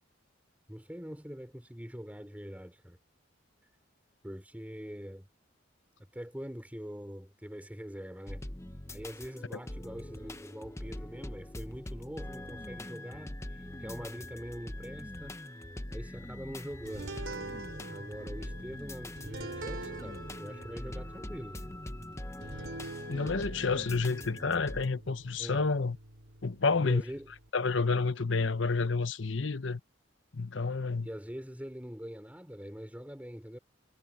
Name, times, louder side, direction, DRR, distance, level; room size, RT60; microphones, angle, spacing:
voice 1, 0.7-3.0 4.2-5.3 6.1-8.5 8.9-15.7 15.9-17.2 17.9-21.7 25.4-25.7 26.8-27.3 31.0-33.6, equal, 10° right, 4.1 m, -43 dB
sound 1, 8.3-24.9, left 1 dB, 15° left, 0.9 m, -43 dB
sound 2, 16.9-27.5, right 2 dB, 75° right, 3.7 m, -45 dB
voice 2, 23.1-26.0 26.4-27.0 27.5-29.8 30.3-31.1, left 4 dB, 65° left, 0.9 m, -29 dB
head